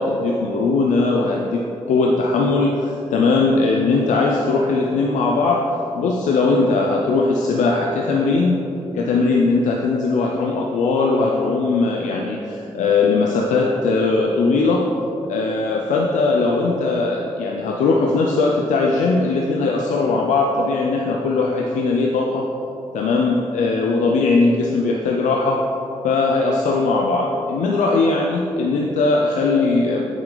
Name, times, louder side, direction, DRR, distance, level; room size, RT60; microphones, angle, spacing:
voice 1, 0.0-5.7 6.0-8.6 8.9-14.8 15.3-22.5 22.9-25.6 26.0-30.0, left 3 dB, 85° left, 0 dB, 0.5 m, -19 dB
8.3 x 7.0 x 3.9 m, 3.0 s
supercardioid pair, 40°, 12 cm